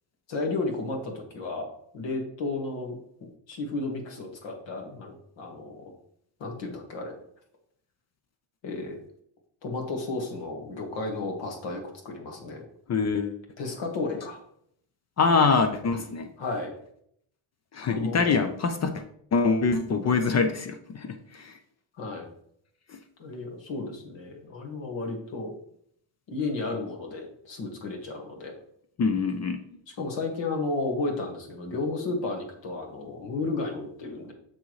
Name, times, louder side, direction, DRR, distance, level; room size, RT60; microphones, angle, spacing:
voice 1, 0.3-1.7 1.9-5.9 6.4-7.1 8.6-9.0 9.6-12.6 13.6-14.4 16.4-16.7 17.8-18.4 22.0-22.3 23.2-25.5 26.3-28.6 30.0-34.3, left 3 dB, 65° left, 1 dB, 1.9 m, -33 dB
voice 2, 12.9-13.4 15.2-16.3 17.7-19.0 19.3-21.6 22.9-23.0 29.0-29.6, left 4 dB, 35° left, 8 dB, 0.5 m, -24 dB
7.0 x 6.2 x 3.1 m, 0.68 s
cardioid pair, 165°, 47 cm